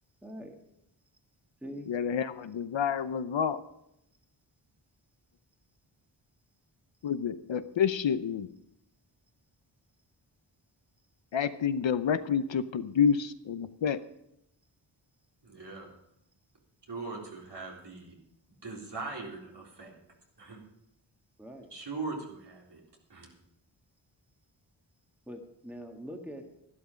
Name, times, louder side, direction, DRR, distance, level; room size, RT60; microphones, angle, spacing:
voice 1, 0.2-0.5 1.6-1.9 21.4-21.7 25.3-26.4, equal, 5° right, 3 dB, 1.6 m, -43 dB
voice 2, 1.9-3.6 7.0-8.5 11.3-14.0, left 7 dB, 75° left, 12 dB, 0.8 m, -28 dB
voice 3, 15.4-15.9 16.9-18.2 18.6-19.9 20.4-20.6 21.7-22.8 23.1-23.3, right 3 dB, 60° right, -2 dB, 3.8 m, -40 dB
13.0 x 12.0 x 5.1 m, 0.79 s
wide cardioid pair, 120°, 46 cm